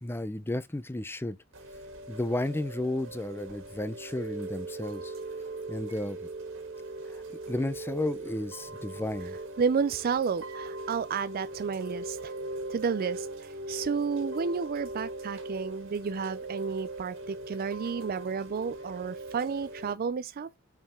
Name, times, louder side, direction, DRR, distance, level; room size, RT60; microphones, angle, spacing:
voice 1, 0.0-1.4 2.1-5.1 5.7-6.3 7.1-9.4, left 1 dB, 10° left, 0.5 m, -33 dB
Chime / Rain, 1.5-19.9, right 2 dB, 65° right, 1.8 m, -40 dB
voice 2, 9.6-12.3 12.7-20.6, right 5 dB, 45° right, 0.4 m, -31 dB
5.7 x 4.9 x 4.3 m
head